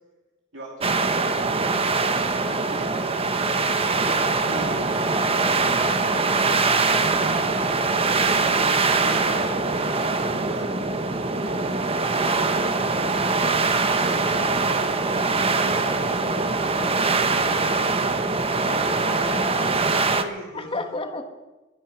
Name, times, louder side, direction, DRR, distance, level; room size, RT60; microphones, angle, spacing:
voice 1, 0.5-3.3 4.0-6.5 6.9-14.9 15.5-18.9 19.6-20.8, right 2 dB, 75° right, -3 dB, 2.7 m, -40 dB
sound 1, 0.8-20.2, right 3 dB, 30° right, 1.0 m, -23 dB
voice 2, 3.7-4.3 18.7-19.7 20.5-21.2, left 3 dB, 25° left, 6 dB, 1.5 m, -34 dB
sound 2, 5.0-18.1, left 2 dB, 55° left, 3.3 m, -44 dB
22.5 x 9.2 x 6.0 m, 1.1 s
head